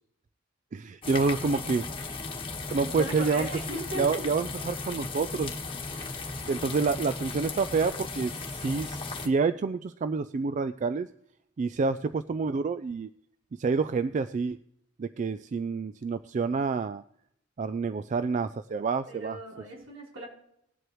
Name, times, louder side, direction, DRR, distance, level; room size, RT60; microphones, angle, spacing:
voice 1, 0.7-1.9 2.7-5.6 6.0-6.1 6.5-11.1 11.6-13.1 13.6-14.6 15.0-17.0 17.6-19.4, right 4 dB, 40° right, 12 dB, 0.3 m, -28 dB
sound 1, 1.0-9.3, left 3 dB, 25° left, 1.4 m, -36 dB
voice 2, 2.8-4.3 19.1-20.3, equal, 85° right, -2 dB, 3.7 m, -37 dB
20.0 x 8.0 x 3.0 m, 0.73 s
head